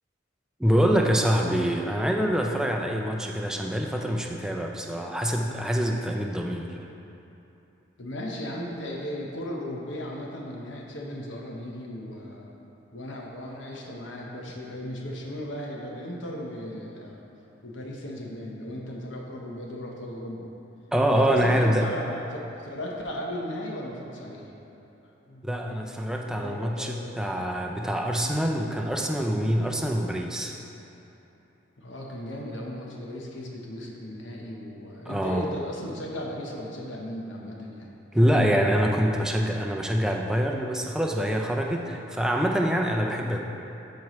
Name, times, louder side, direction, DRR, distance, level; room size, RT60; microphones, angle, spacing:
voice 1, 0.6-6.8 20.9-21.9 25.4-30.6 35.1-35.5 38.1-43.4, equal, 5° right, 1 dB, 0.4 m, -25 dB
voice 2, 8.0-12.5 12.9-17.2 17.6-20.5 21.1-24.5 25.0-25.4 26.3-27.1 31.8-38.5, equal, 80° left, -2 dB, 1.0 m, -36 dB
12.5 x 4.7 x 3.1 m, 3.0 s
head